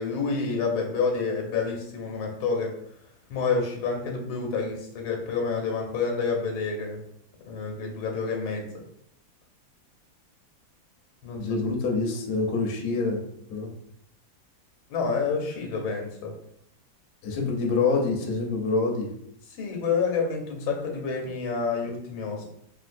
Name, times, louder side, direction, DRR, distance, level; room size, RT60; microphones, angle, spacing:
voice 1, 0.0-2.7 3.3-7.0 7.5-8.7 11.2-11.5 14.9-16.3 19.6-22.5, left 4 dB, 85° left, 2 dB, 1.5 m, -28 dB
voice 2, 11.4-13.2 13.5-13.7 17.2-19.1, left 4 dB, 65° left, 1 dB, 1.0 m, -26 dB
3.4 x 2.5 x 2.5 m, 0.72 s
omnidirectional pair, 2.1 m